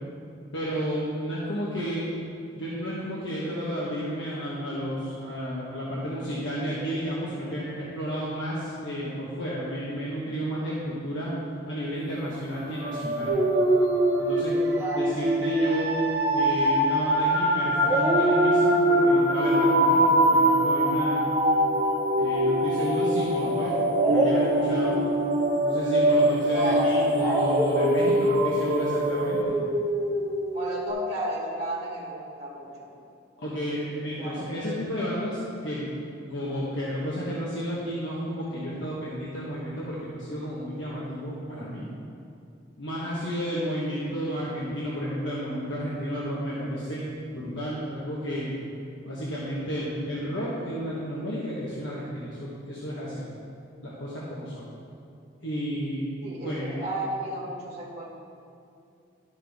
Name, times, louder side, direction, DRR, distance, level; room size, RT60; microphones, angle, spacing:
voice 1, 0.5-2.1 2.5-11.3 11.7-13.4 14.2-14.6 14.9-15.9 16.3-21.3 22.2-23.7 24.1-25.0 25.6-29.6 33.4-35.9 36.3-41.8 42.8-48.5 49.0-53.2 53.8-54.7 55.4-56.0 56.4-56.8, equal, 70° left, -7 dB, 1.2 m, -32 dB
sound 1, 12.6-29.4, right 1 dB, 60° right, 1.0 m, -25 dB
Dog, 13.3-17.4 17.8-22.8 23.9-30.9, right 1 dB, 15° left, 1.2 m, -27 dB
voice 2, 26.5-27.1 30.5-32.9 34.2-34.5 56.2-58.0, right 1 dB, 35° right, -4 dB, 1.4 m, -33 dB
12.0 x 5.9 x 3.5 m, 2.5 s
head